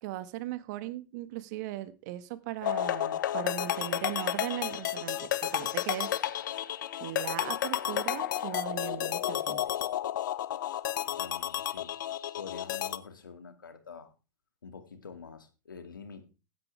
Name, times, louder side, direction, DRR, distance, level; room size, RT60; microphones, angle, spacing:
voice 1, 0.0-6.1 7.0-9.6, right 14 dB, 60° right, 13 dB, 1.7 m, -38 dB
sound 1, 2.6-13.0, left 12 dB, 70° left, 1.0 m, -32 dB
voice 2, 11.2-11.9 12.3-14.1 14.6-16.3, left 5 dB, 90° left, 8 dB, 2.2 m, -46 dB
15.5 x 11.5 x 3.4 m, 0.30 s
hypercardioid pair, 95°, 11 cm